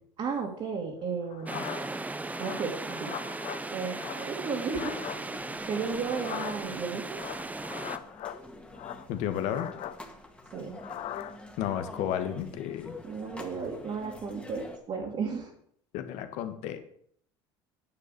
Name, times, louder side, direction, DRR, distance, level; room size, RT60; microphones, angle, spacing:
voice 1, 0.2-1.6 2.4-3.1 3.7-5.4 5.7-7.2 10.5-10.7 13.0-15.5, right 5 dB, 45° right, -3 dB, 2.6 m, -34 dB
sound 1, 1.2-2.0 2.3-3.6 3.9-5.2 6.0-6.8 7.1-8.4 8.7-10.0 10.7-11.4, left 11 dB, 55° left, 0.8 m, -40 dB
sound 2, 1.5-8.0, right 2 dB, 10° right, 0.9 m, -37 dB
sound 3, 4.9-14.8, left 1 dB, 10° left, 2.0 m, -47 dB
voice 2, 9.1-9.7 11.6-12.9 15.9-16.8, left 10 dB, 70° left, 9 dB, 1.4 m, -32 dB
9.8 x 6.7 x 6.7 m, 0.66 s
supercardioid pair, 85°, 12 cm